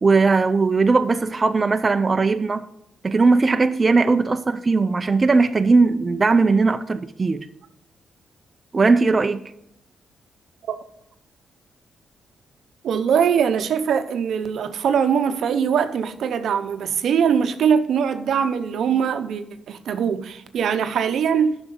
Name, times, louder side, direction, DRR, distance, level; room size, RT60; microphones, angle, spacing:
voice 1, 0.0-2.7 3.0-7.5 8.7-9.5, right 4 dB, 30° right, 0.5 m, -18 dB
voice 2, 12.8-21.6, right 7 dB, 75° right, 0.7 m, -22 dB
9.8 x 6.1 x 5.5 m
cardioid pair, 80°, 0 cm